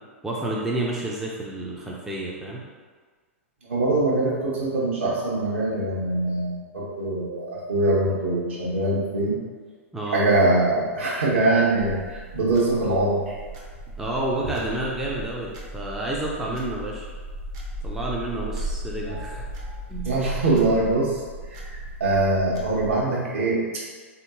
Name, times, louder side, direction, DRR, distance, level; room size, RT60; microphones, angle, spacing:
voice 1, 0.2-2.6 9.9-10.2 14.0-17.1 17.8-19.4 19.9-20.2, right 1 dB, 5° right, -4 dB, 0.4 m, -30 dB
voice 2, 3.6-9.4 10.1-13.4 19.0-19.3 19.6-19.8 20.0-21.2 21.5-21.7 22.0-23.8, right 2 dB, 60° right, -5 dB, 1.0 m, -23 dB
sound 1, 11.8-23.0, right 1 dB, 35° right, 0.6 m, -36 dB
3.7 x 2.7 x 2.6 m, 1.5 s
figure-of-eight pair, 100°, 7 cm